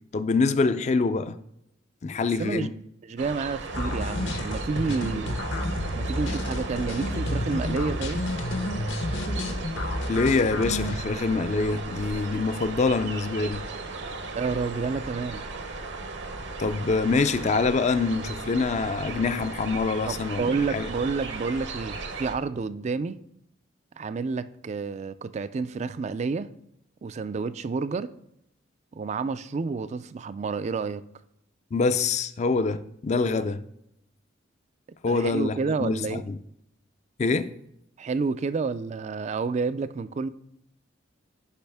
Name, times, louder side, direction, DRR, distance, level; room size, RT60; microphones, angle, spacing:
voice 1, 0.1-1.4 2.0-2.8 10.1-13.6 16.6-20.9 31.7-33.6 35.0-36.4 37.2-37.5, left 4 dB, 35° left, 0.4 m, -25 dB
voice 2, 2.4-2.7 3.0-5.4 5.9-8.2 14.3-15.5 20.0-23.2 24.0-26.5 27.0-28.1 28.9-31.0 35.1-36.2 38.0-40.3, right 4 dB, 35° right, 0.3 m, -29 dB
sound 1, 3.2-22.3, right 3 dB, 65° right, 0.9 m, -36 dB
sound 2, 3.7-11.0, left 1 dB, 70° left, 1.0 m, -30 dB
10.5 x 5.6 x 3.4 m
head